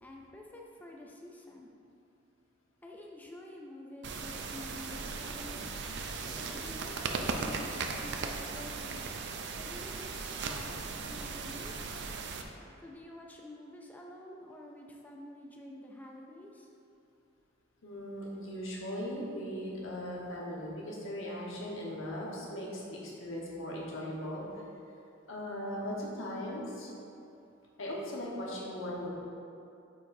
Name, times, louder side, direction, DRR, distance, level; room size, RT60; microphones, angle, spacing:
voice 1, 0.0-1.7 2.8-5.8 6.2-11.8 12.8-16.7, left 1 dB, 10° left, -1 dB, 0.4 m, -49 dB
sound 1, 4.0-12.4, right 4 dB, 60° right, 0.5 m, -37 dB
voice 2, 17.8-24.4 25.3-26.9 27.8-29.1, equal, 85° left, -4 dB, 1.2 m, -38 dB
8.7 x 4.6 x 2.7 m, 2.7 s
head